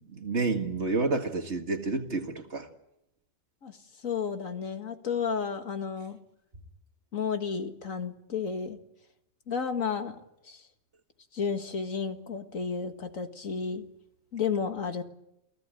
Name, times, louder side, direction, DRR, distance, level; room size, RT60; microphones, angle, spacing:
voice 1, 0.0-2.7, right 3 dB, 55° right, 2.3 m, -29 dB
voice 2, 4.0-6.2 7.1-8.8 9.5-10.6 11.3-13.8 14.3-15.0, left 6 dB, 90° left, 2.2 m, -32 dB
29.0 x 16.5 x 9.0 m
omnidirectional pair, 1.3 m